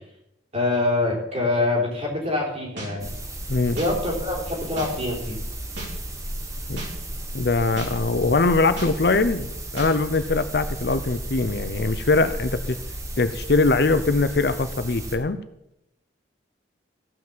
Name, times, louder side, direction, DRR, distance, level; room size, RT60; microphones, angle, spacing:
voice 1, 0.5-3.1 3.7-5.4, left 2 dB, 35° right, -3 dB, 4.1 m, -25 dB
sound 1, 2.8-2.9 3.8-3.9 4.8-4.9 5.8-5.9 6.8-6.9 7.8-7.9 8.8-8.9 9.8-9.9, right 2 dB, 65° right, 5.7 m, -34 dB
sound 2, 3.0-15.2, right 1 dB, 15° right, 1.3 m, -34 dB
voice 2, 7.3-12.8 13.2-15.4, left 3 dB, 60° left, 11 dB, 0.7 m, -22 dB
15.5 x 6.0 x 7.5 m, 0.85 s
head